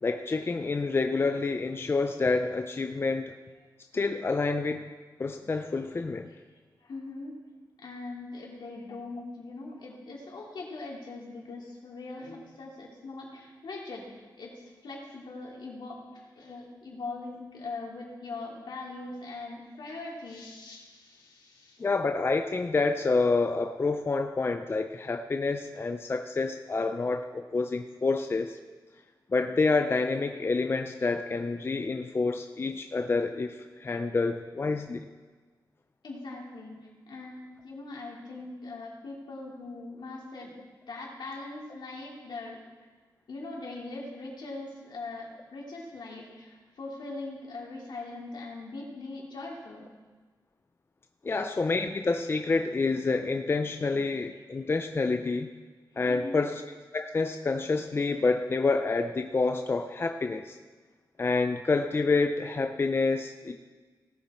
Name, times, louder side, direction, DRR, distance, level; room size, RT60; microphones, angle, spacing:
voice 1, 0.0-3.3 3.9-4.9 5.2-6.3 21.8-28.6 29.3-35.1 51.2-55.5 56.0-56.6 56.9-60.6 61.2-63.5, left 3 dB, 30° left, 6 dB, 0.5 m, -28 dB
voice 2, 6.8-7.4 7.8-21.9 36.0-40.6 40.9-42.6 43.3-49.9 56.1-56.4, left 3 dB, 80° left, -3 dB, 3.2 m, -41 dB
18.5 x 7.2 x 4.4 m, 1.4 s
wide cardioid pair, 155°, 8 cm